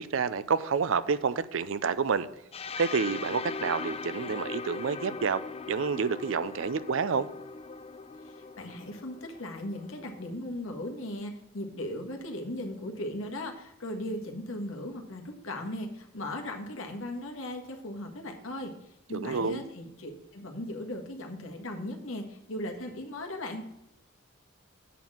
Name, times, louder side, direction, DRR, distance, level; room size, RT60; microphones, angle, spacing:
voice 1, 0.0-2.3 2.8-5.4 5.7-7.3 19.1-19.6, right 5 dB, 60° right, 0.5 m, -29 dB
sound 1, 2.5-10.3, left 4 dB, 30° left, 0.4 m, -40 dB
voice 2, 8.2-18.7 19.1-23.6, left 1 dB, 70° left, 1.5 m, -37 dB
8.2 x 4.4 x 7.3 m
head